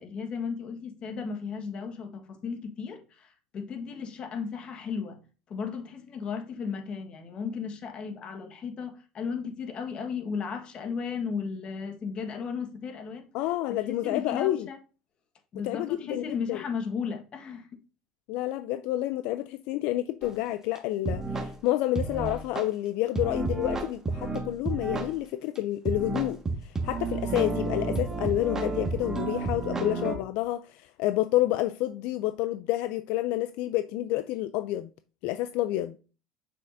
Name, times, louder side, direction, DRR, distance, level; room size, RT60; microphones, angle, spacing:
voice 1, 0.0-5.2 5.5-13.3 13.8-14.8 15.5-17.7, left 6 dB, 45° left, 1.4 m, -35 dB
voice 2, 13.3-14.7 15.6-16.6 18.3-34.9 35.2-36.0, left 15 dB, 70° left, 0.4 m, -29 dB
sound 1, 20.2-20.3 20.8-20.9 21.1-21.5 22.0-22.6 23.2-25.1 25.6-25.7 25.9-30.2, right 3 dB, 20° right, 1.6 m, -31 dB
6.8 x 6.4 x 2.6 m
supercardioid pair, 95°, 2 cm